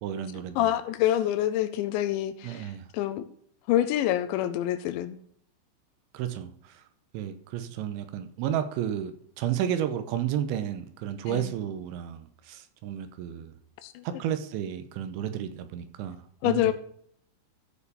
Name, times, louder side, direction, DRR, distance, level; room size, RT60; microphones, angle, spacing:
voice 1, 0.0-0.7 2.4-2.9 6.1-6.8 7.1-13.5 14.0-16.2 16.4-16.7, right 10 dB, 85° right, 10 dB, 3.1 m, -32 dB
voice 2, 0.6-3.3 3.7-5.2 11.3-11.5 13.8-14.0 16.4-16.7, left 12 dB, 80° left, 11 dB, 2.8 m, -27 dB
14.0 x 4.7 x 5.0 m, 0.63 s
omnidirectional pair, 5.5 m